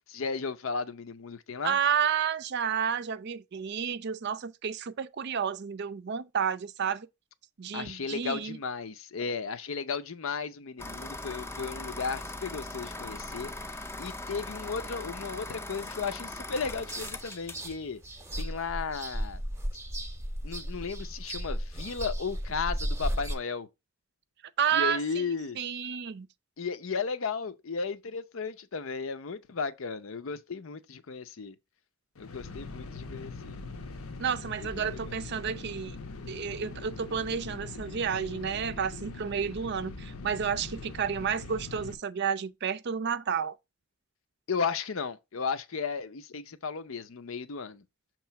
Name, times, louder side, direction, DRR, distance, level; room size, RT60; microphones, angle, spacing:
voice 1, 0.1-1.8 7.7-13.5 14.0-18.0 18.4-19.4 20.4-23.7 24.7-25.6 26.6-31.5 32.2-33.6 34.8-35.1 44.5-47.8, left 5 dB, 65° left, 0.6 m, -35 dB
voice 2, 1.6-7.1 7.6-8.6 24.6-26.3 34.2-36.0 36.3-43.5, right 7 dB, 50° right, 0.4 m, -31 dB
sound 1, 10.8-17.7, left 2 dB, 10° left, 0.5 m, -40 dB
sound 2, 16.5-23.3, equal, 15° right, 0.8 m, -35 dB
sound 3, 32.1-41.9, left 3 dB, 90° left, 0.9 m, -42 dB
6.6 x 3.1 x 5.6 m
head